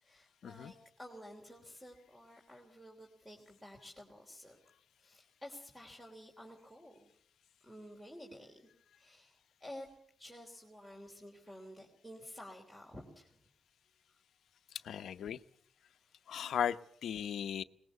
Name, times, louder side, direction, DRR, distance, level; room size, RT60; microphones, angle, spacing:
voice 1, 0.0-4.6 5.0-7.1 7.6-8.7 9.0-9.9 10.2-13.4, left 1 dB, 5° right, 3.5 m, -52 dB
voice 2, 14.8-15.4 16.3-17.6, left 9 dB, 80° left, 0.8 m, -37 dB
21.5 x 19.5 x 6.9 m
cardioid pair, 115°, 0 cm